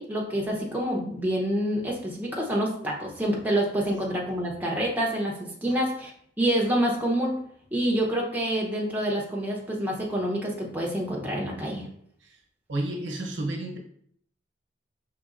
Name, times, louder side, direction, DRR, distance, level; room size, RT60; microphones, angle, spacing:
voice 1, 0.0-6.1 6.4-7.3 7.7-11.9, right 1 dB, 10° right, -2 dB, 0.8 m, -27 dB
voice 2, 12.7-13.8, right 1 dB, 80° right, 0 dB, 1.0 m, -31 dB
5.1 x 3.7 x 2.5 m, 0.65 s
head